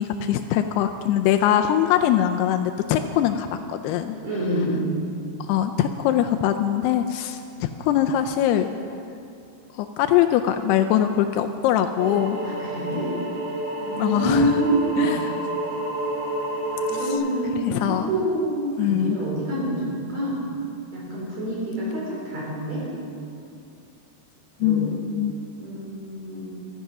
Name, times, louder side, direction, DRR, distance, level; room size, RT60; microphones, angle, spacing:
voice 1, 0.0-4.2 5.5-8.7 9.7-12.4 13.9-14.5 15.0-15.4 17.0-17.1 17.7-18.1 18.8-19.2 24.6-25.4, left 10 dB, 85° left, 7 dB, 2.5 m, -22 dB
voice 2, 4.2-4.9 12.4-13.1 13.8-15.1 16.7-20.4 20.9-22.8 24.6-24.9 25.6-26.4, right 1 dB, 40° right, -4 dB, 4.9 m, -26 dB
sound 1, 12.0-17.1, right 1 dB, 75° right, 4.1 m, -29 dB
15.0 x 13.5 x 5.9 m, 2.5 s
omnidirectional pair, 4.9 m